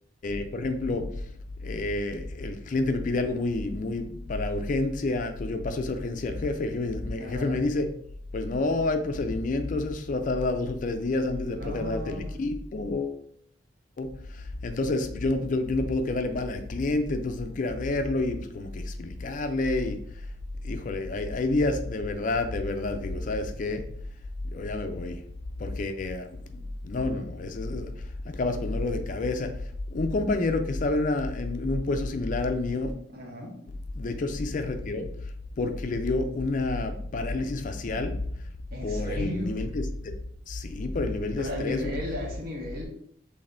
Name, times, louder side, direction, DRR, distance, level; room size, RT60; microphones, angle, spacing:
voice 1, 0.2-1.1 1.6-7.9 8.3-13.2 14.0-20.0 20.6-23.8 24.5-25.2 25.6-27.9 28.3-29.5 29.9-32.9 34.0-35.1 35.6-38.2 38.8-40.1 40.5-41.9, left 2 dB, 45° left, 7 dB, 0.4 m, -29 dB
voice 2, 7.2-7.6 11.5-12.3 33.1-33.5 38.7-39.5 41.4-42.8, left 1 dB, 50° right, -1 dB, 1.3 m, -35 dB
5.9 x 3.5 x 2.6 m, 0.66 s
head